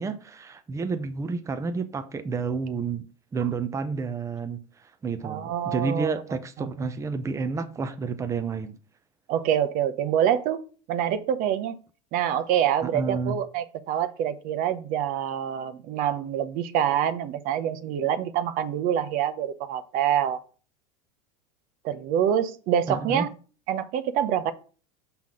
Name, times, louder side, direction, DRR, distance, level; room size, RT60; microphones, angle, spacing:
voice 1, 0.0-3.0 3.3-8.8 12.8-13.4 22.9-23.3, right 4 dB, 15° right, 0.7 m, -30 dB
voice 2, 5.2-6.1 6.6-6.7 9.3-10.6 10.9-11.8 12.1-20.4 21.8-23.3 23.7-24.5, right 9 dB, 55° right, 0.7 m, -26 dB
5.9 x 5.8 x 3.8 m
supercardioid pair, 105°, 17 cm